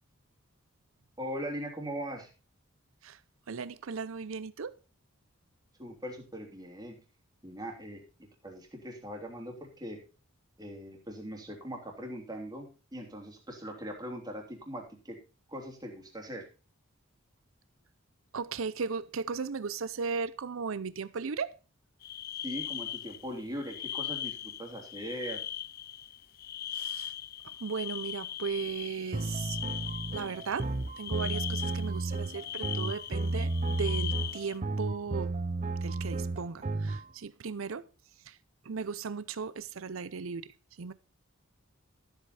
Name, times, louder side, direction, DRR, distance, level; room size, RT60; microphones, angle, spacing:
voice 1, 1.2-2.3 5.8-7.0 7.4-10.0 10.6-15.2 15.5-16.5 22.4-25.4, equal, 20° right, 3.1 m, -40 dB
voice 2, 3.5-4.8 18.3-21.6 26.7-27.1 27.4-29.6 30.1-35.3 35.8-37.9 38.2-38.4 38.6-40.9, right 5 dB, 75° right, 0.6 m, -37 dB
sound 1, 22.0-34.6, left 11 dB, 45° left, 0.4 m, -40 dB
sound 2, 29.1-37.0, right 2 dB, 35° right, 0.7 m, -33 dB
13.5 x 8.1 x 4.2 m
head